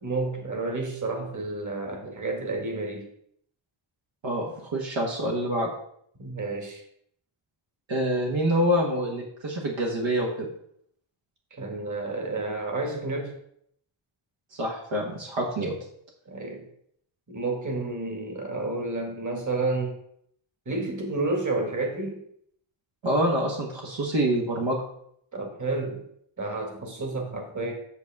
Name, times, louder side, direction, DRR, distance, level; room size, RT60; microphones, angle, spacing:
voice 1, 0.0-3.1 6.2-6.8 11.5-13.4 16.3-16.6 17.3-20.0 20.7-22.2 25.3-26.0 26.4-27.7, right 3 dB, 35° right, 2 dB, 1.9 m, -30 dB
voice 2, 4.2-5.7 7.9-10.5 14.5-15.8 23.0-24.8, equal, 65° right, -1 dB, 1.5 m, -26 dB
8.1 x 6.7 x 3.5 m, 0.69 s
wide cardioid pair, 100°, 50 cm